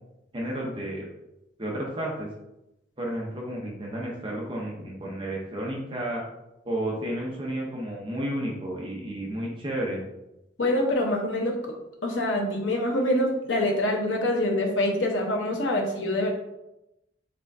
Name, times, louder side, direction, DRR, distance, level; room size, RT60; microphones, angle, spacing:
voice 1, 0.3-1.1 1.6-2.3 3.0-6.2 6.6-10.0, right 1 dB, 25° right, -2 dB, 0.7 m, -32 dB
voice 2, 10.6-11.5 12.0-16.3, left 1 dB, 80° left, 0 dB, 0.9 m, -25 dB
4.3 x 3.4 x 2.6 m, 0.90 s
head